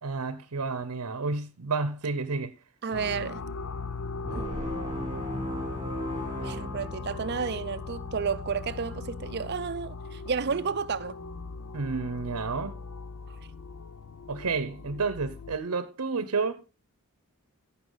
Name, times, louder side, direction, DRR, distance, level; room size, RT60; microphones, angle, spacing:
voice 1, 0.0-2.5 11.7-12.7 14.3-16.6, right 4 dB, 90° right, 0.7 m, -30 dB
voice 2, 2.8-3.4 4.3-4.5 6.4-11.2, right 5 dB, 45° right, 0.5 m, -31 dB
sound 1, 2.9-15.6, left 4 dB, 70° left, 0.6 m, -39 dB
sound 2, 4.2-7.6, equal, 15° right, 2.7 m, -35 dB
15.5 x 5.8 x 3.9 m
head